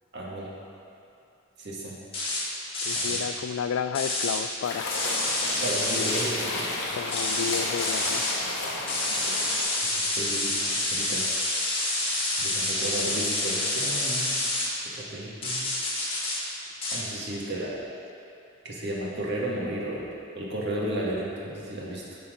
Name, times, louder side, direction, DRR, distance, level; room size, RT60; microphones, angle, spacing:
voice 1, 0.1-0.5 1.6-2.0 2.9-3.3 5.6-6.7 10.0-11.2 12.4-14.5 15.0-15.7 16.9-17.8 18.6-22.2, right 1 dB, 60° right, -5 dB, 1.7 m, -33 dB
sound 1, 2.1-2.4 2.7-3.2 4.0-4.4 4.9-6.3 7.1-8.4 8.9-14.7 15.4-16.4 16.8-17.0, left 2 dB, 30° left, 1.7 m, -28 dB
voice 2, 2.9-5.3 6.9-8.2, left 7 dB, 80° left, 12 dB, 0.3 m, -32 dB
sound 2, 4.6-9.6, left 2 dB, 60° left, 1.2 m, -32 dB
11.5 x 4.3 x 5.1 m, 2.6 s
head